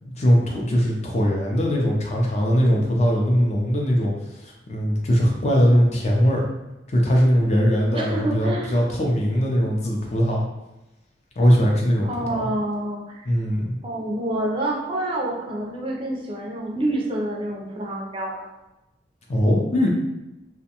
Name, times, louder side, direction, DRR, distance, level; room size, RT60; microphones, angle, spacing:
voice 1, 0.0-4.1 4.4-6.5 6.9-10.5 11.4-12.1 12.4-12.5 13.3-13.7 19.3-19.9, equal, 35° left, -1 dB, 0.4 m, -20 dB
voice 2, 7.9-8.7 12.0-13.3 13.8-18.4, right 1 dB, 30° right, -2 dB, 0.4 m, -27 dB
2.5 x 2.1 x 2.8 m, 0.97 s
head